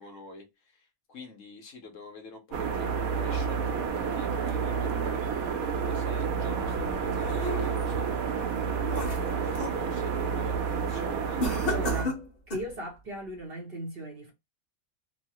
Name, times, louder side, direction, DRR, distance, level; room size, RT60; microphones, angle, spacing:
voice 1, 0.0-8.2 8.9-11.4, left 2 dB, 65° left, 1.1 m, -47 dB
sound 1, 2.5-12.0, right 6 dB, 75° right, 1.1 m, -29 dB
sound 2, 6.8-8.0 8.5-9.8 10.2-10.5 11.4-12.8, left 3 dB, 40° left, 1.3 m, -35 dB
voice 2, 11.4-12.2 12.5-14.3, right 1 dB, 50° right, 0.8 m, -37 dB
3.1 x 2.0 x 2.8 m
omnidirectional pair, 1.5 m